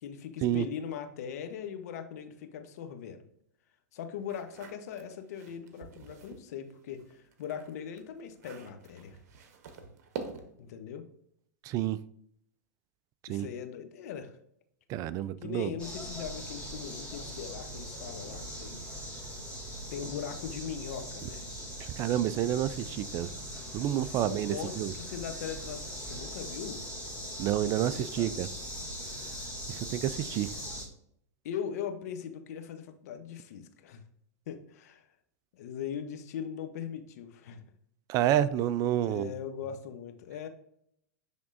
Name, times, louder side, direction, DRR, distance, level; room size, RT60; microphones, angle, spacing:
voice 1, 0.0-3.2 3.9-9.2 10.6-11.1 13.3-14.4 15.4-18.8 19.9-21.4 24.1-26.8 27.8-28.3 31.4-34.0 34.5-35.0 35.5-37.6 39.0-40.5, left 8 dB, 65° left, 0.9 m, -40 dB
sound 1, 4.2-6.5 6.9-10.7, right 5 dB, 60° right, 1.1 m, -46 dB
voice 2, 11.6-12.0 13.3-13.5 14.9-15.7 21.8-23.3 23.7-24.9 27.4-28.5 29.7-30.5 38.1-39.3, right 12 dB, 40° right, 0.3 m, -29 dB
sound 2, 15.8-30.8, equal, 10° left, 2.3 m, -41 dB
10.0 x 3.6 x 2.5 m
hypercardioid pair, 105°, 9 cm